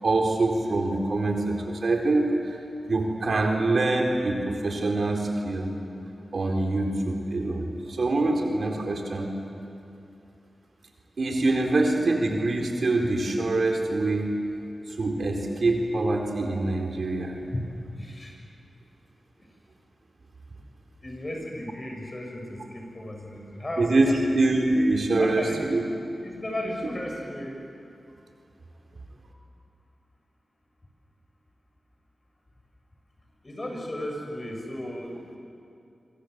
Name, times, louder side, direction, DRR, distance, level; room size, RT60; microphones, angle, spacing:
voice 1, 0.0-2.6 2.9-5.7 6.3-9.3 11.2-14.3 15.0-17.4 23.8-25.8, right 2 dB, 60° right, 1 dB, 4.2 m, -24 dB
voice 2, 17.9-18.4 21.0-24.4 25.2-25.6 26.2-27.5 33.4-35.4, left 1 dB, 30° left, 1 dB, 7.3 m, -35 dB
27.5 x 25.5 x 8.2 m, 2.6 s
wide cardioid pair, 75°, 0 cm